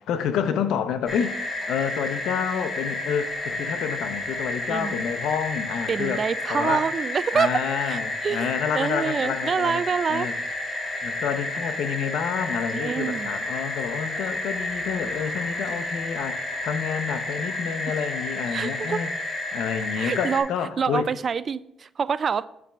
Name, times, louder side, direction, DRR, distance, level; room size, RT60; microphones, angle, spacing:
voice 1, 0.1-1.4 1.7-6.2 6.5-6.8 7.3-9.8 10.1-10.4 11.0-19.1 19.5-21.1, left 8 dB, 85° left, 0.6 m, -29 dB
sound 1, 1.1-20.4, left 2 dB, 30° left, 2.3 m, -31 dB
voice 2, 5.9-10.3 12.7-13.3 18.5-19.0 20.0-20.5 20.8-22.5, right 6 dB, 45° right, 0.3 m, -26 dB
8.5 x 3.4 x 6.1 m
cardioid pair, 90°, 0 cm